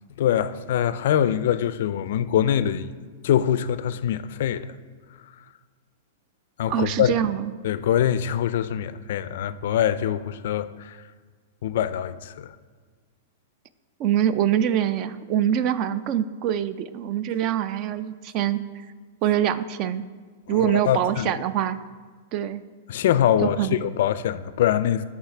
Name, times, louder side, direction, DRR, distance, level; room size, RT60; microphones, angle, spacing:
voice 1, 0.2-2.9 3.2-4.7 6.6-7.1 7.6-11.0 11.6-12.5 20.5-21.3 22.9-25.0, left 10 dB, 65° left, 0.4 m, -23 dB
voice 2, 6.7-7.5 14.0-18.6 19.2-20.0 20.5-21.8 22.3-22.6 23.4-23.8, right 10 dB, 40° right, 0.4 m, -24 dB
12.0 x 5.6 x 3.4 m
hypercardioid pair, 140°, 0 cm